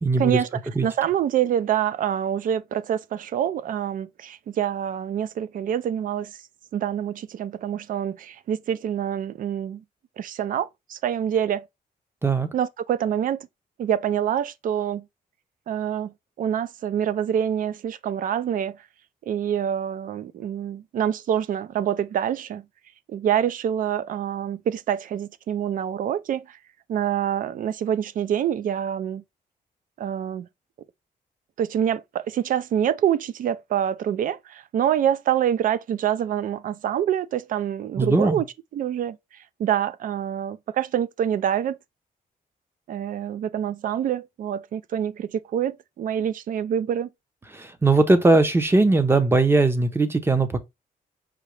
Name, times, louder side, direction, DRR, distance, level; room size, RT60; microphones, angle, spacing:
voice 1, 0.0-0.4 0.8-0.9 12.2-12.5 38.0-38.4 47.5-50.6, right 3 dB, 15° right, 0.6 m, -19 dB
voice 2, 0.8-6.3 6.7-9.8 10.2-11.6 12.5-13.5 13.8-15.0 15.7-18.8 19.3-22.6 23.1-26.6 26.9-29.2 30.0-30.5 31.6-38.5 38.7-41.8 42.9-47.1, right 9 dB, 65° right, 0.4 m, -26 dB
5.0 x 2.8 x 3.1 m
wide cardioid pair, 140°, 15 cm